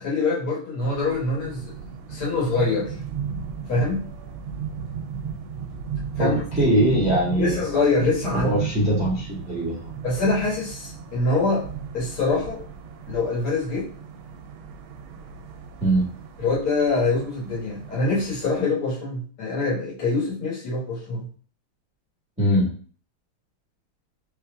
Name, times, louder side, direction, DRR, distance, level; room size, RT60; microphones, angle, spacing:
voice 1, 0.0-1.7 2.1-2.9 3.7-4.0 6.2-6.4 7.3-8.5 10.0-11.7 11.9-12.6 13.1-13.9 16.4-21.3, left 3 dB, 90° left, -6 dB, 2.6 m, -24 dB
sound 1, 0.8-18.6, right 7 dB, 75° right, 1.3 m, -35 dB
voice 2, 6.2-7.6 8.3-9.9 15.8-16.1 22.4-22.7, equal, 5° right, -7 dB, 0.7 m, -22 dB
4.3 x 3.3 x 2.3 m, 0.42 s
omnidirectional pair, 2.3 m